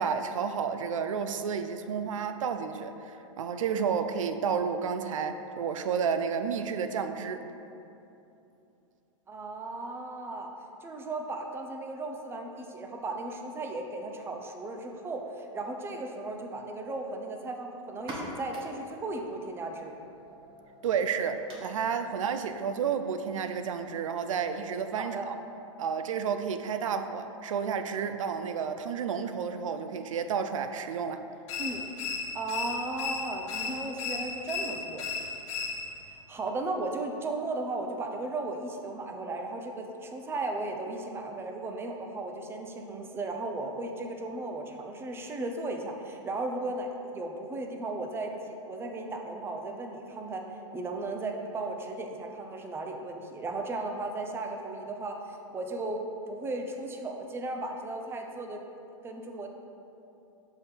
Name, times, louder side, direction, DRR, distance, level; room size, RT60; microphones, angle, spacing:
voice 1, 0.0-7.4 20.8-25.3 25.8-31.3, right 6 dB, 80° right, 9 dB, 0.4 m, -31 dB
voice 2, 9.3-10.5 10.8-19.9 25.1-25.3 31.6-31.8 32.3-35.1 36.3-50.4 50.7-58.6 59.0-59.5, right 2 dB, 15° right, 3 dB, 0.5 m, -36 dB
sound 1, 17.9-25.3, right 1 dB, 30° right, 1.2 m, -48 dB
sound 2, 31.5-36.1, left 4 dB, 55° left, 1.0 m, -35 dB
6.8 x 3.5 x 4.4 m, 2.9 s
hypercardioid pair, 120°, 16 cm